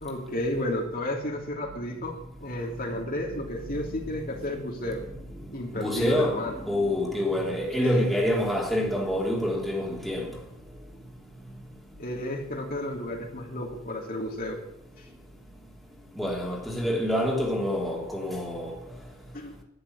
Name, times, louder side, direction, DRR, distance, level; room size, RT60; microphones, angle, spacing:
voice 1, 0.0-5.0 5.5-6.6 7.8-8.1 12.0-14.6 19.3-19.6, left 1 dB, 45° left, 3.0 m, -32 dB
voice 2, 5.3-10.4 16.1-18.9, left 1 dB, ahead, 3.0 m, -27 dB
12.0 x 11.5 x 8.0 m
head